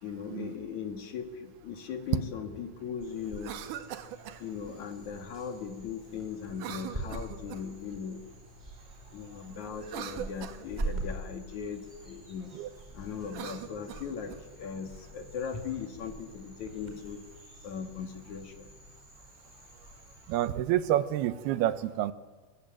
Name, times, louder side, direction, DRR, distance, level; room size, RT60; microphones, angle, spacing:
voice 1, 0.0-3.6 4.4-8.2 9.1-12.5 12.9-17.2 17.6-18.7, left 7 dB, 55° left, 7 dB, 3.0 m, -39 dB
sound 1, 3.0-20.5, right 2 dB, 10° right, 5.7 m, -44 dB
Cough, 3.3-4.4 6.5-7.8 9.7-11.0 13.2-14.4, right 10 dB, 65° right, 2.5 m, -42 dB
voice 2, 20.3-22.1, right 12 dB, 85° right, 14 dB, 3.0 m, -28 dB
24.5 x 22.5 x 9.1 m, 1.4 s
omnidirectional pair, 4.4 m